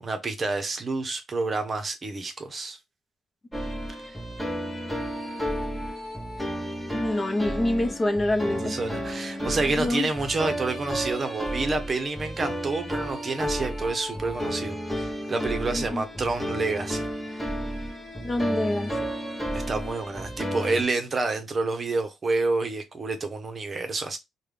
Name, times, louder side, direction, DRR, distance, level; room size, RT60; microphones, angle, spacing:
voice 1, 0.0-2.8 4.1-4.2 8.6-17.5 19.5-24.2, right 3 dB, 35° right, 0.8 m, -29 dB
sound 1, 3.5-20.8, equal, 5° left, 1.0 m, -32 dB
voice 2, 6.9-8.7 9.8-10.1 15.7-16.0 18.2-18.9, left 1 dB, 25° left, 0.7 m, -26 dB
3.4 x 2.2 x 3.3 m
cardioid pair, 90°, 0 cm